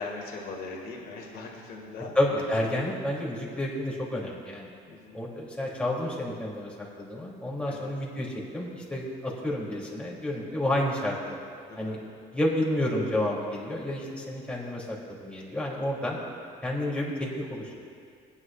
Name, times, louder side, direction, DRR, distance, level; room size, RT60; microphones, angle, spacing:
voice 1, 0.0-2.2 4.9-5.2 7.7-7.9 11.7-12.0, left 3 dB, 65° left, -2 dB, 2.2 m, -40 dB
voice 2, 2.1-4.7 5.1-11.3 11.8-12.0 12.3-16.2 16.6-17.8, left 1 dB, 5° left, -5 dB, 2.8 m, -30 dB
19.0 x 9.8 x 2.4 m, 2.4 s
cardioid pair, 110°, 17 cm